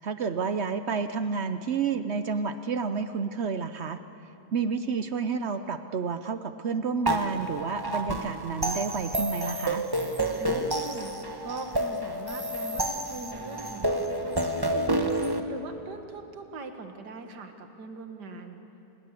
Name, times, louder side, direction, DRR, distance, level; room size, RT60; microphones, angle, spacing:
voice 1, 0.0-4.0 4.5-9.9, right 5 dB, 75° right, 10 dB, 0.6 m, -30 dB
sound 1, 7.1-15.4, right 1 dB, 15° right, 1.0 m, -29 dB
voice 2, 10.4-11.1 11.4-15.2 15.5-18.6, right 3 dB, 60° right, 6 dB, 2.2 m, -41 dB
27.0 x 21.0 x 8.3 m, 2.9 s
omnidirectional pair, 2.1 m